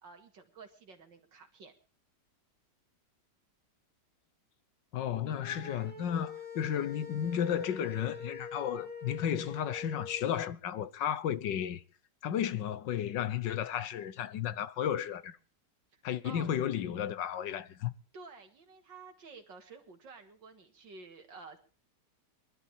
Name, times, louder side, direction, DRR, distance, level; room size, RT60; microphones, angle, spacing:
voice 1, 0.0-1.7 15.9-16.5 18.1-21.6, right 4 dB, 85° right, 2.7 m, -51 dB
voice 2, 4.9-11.8 12.2-15.4 16.0-17.9, left 9 dB, 80° left, 1.6 m, -33 dB
sound 1, 5.4-10.3, left 5 dB, 5° left, 2.7 m, -44 dB
21.5 x 12.0 x 4.4 m
omnidirectional pair, 1.9 m